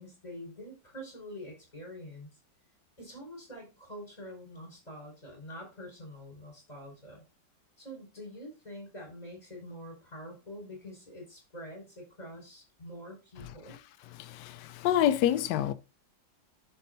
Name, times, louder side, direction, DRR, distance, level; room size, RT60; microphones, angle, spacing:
voice 1, 0.0-2.3 3.0-7.3 7.8-13.8, equal, 20° left, 5.2 m, -46 dB
voice 2, 14.1-15.7, left 11 dB, 70° left, 1.1 m, -27 dB
13.5 x 5.5 x 2.7 m
omnidirectional pair, 2.2 m